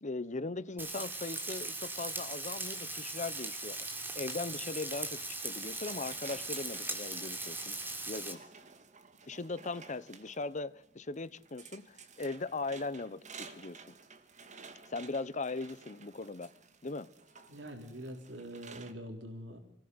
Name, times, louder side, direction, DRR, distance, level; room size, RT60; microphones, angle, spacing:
voice 1, 0.0-8.4 9.3-13.8 14.9-16.5 16.8-17.1, left 3 dB, 40° left, 0.9 m, -39 dB
Frying (food), 0.8-8.3, right 2 dB, 10° right, 3.5 m, -39 dB
sound 1, 5.4-18.9, right 5 dB, 40° right, 2.3 m, -54 dB
voice 2, 17.5-19.6, equal, 85° right, 4.1 m, -44 dB
26.5 x 20.0 x 8.0 m
head